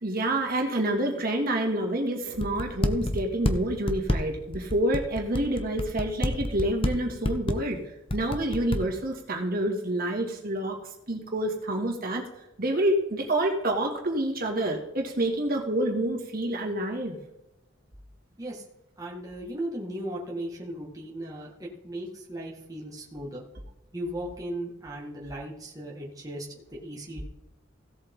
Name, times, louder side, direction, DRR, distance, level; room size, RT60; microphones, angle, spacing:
voice 1, 0.0-10.8 11.1-12.3 12.6-17.2, right 1 dB, 50° right, 1 dB, 2.3 m, -28 dB
sound 1, 2.3-3.5 3.9-6.9 7.2-7.7 8.1-8.8, left 1 dB, 30° left, 1.0 m, -26 dB
voice 2, 19.0-23.4 23.9-27.2, right 1 dB, 20° right, -4 dB, 1.8 m, -37 dB
16.5 x 7.9 x 3.8 m, 0.94 s
head